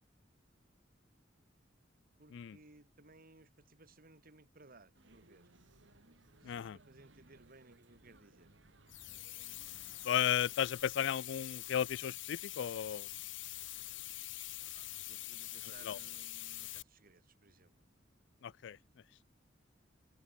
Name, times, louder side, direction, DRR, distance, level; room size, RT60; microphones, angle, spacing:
voice 1, 2.2-5.5 6.4-8.5 14.8-17.9, right 2 dB, 50° right, 2.8 m, -61 dB
sound 1, 4.9-10.6, right 2 dB, 70° right, 2.4 m, -64 dB
voice 2, 6.4-6.8 10.0-13.1 15.8-16.0 18.4-18.8, left 9 dB, 70° left, 0.4 m, -34 dB
sound 2, 8.9-16.8, left 16 dB, 85° left, 1.9 m, -45 dB
head